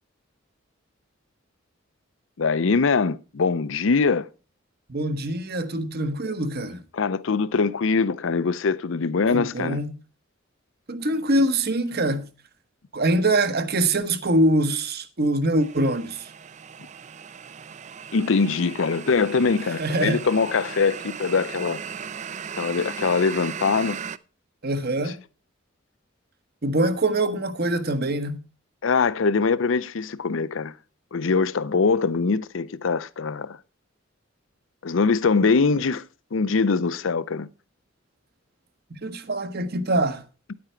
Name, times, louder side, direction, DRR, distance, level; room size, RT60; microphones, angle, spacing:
voice 1, 2.4-4.3 6.9-9.8 18.1-21.8 22.6-24.0 28.8-30.7 31.1-33.6 34.8-36.0 36.3-37.5, left 4 dB, 75° left, 0.6 m, -22 dB
voice 2, 4.9-6.8 9.3-9.9 10.9-12.3 12.9-16.3 19.8-20.3 24.6-25.2 26.6-28.4 38.9-40.2, right 1 dB, 55° right, 1.1 m, -24 dB
sound 1, 15.6-24.2, right 7 dB, 35° right, 0.4 m, -37 dB
10.0 x 8.6 x 4.5 m
head